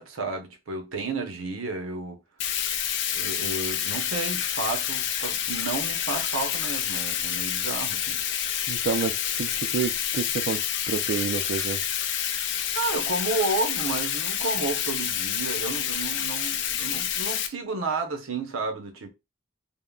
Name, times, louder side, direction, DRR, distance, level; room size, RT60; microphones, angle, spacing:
voice 1, 0.0-2.2 3.1-8.2 12.7-19.1, right 3 dB, 80° right, 0.7 m, -31 dB
Bathtub (filling or washing), 2.4-17.5, left 9 dB, 60° left, 0.4 m, -28 dB
voice 2, 8.7-11.8, right 6 dB, 55° right, 0.3 m, -29 dB
3.5 x 2.1 x 2.2 m
head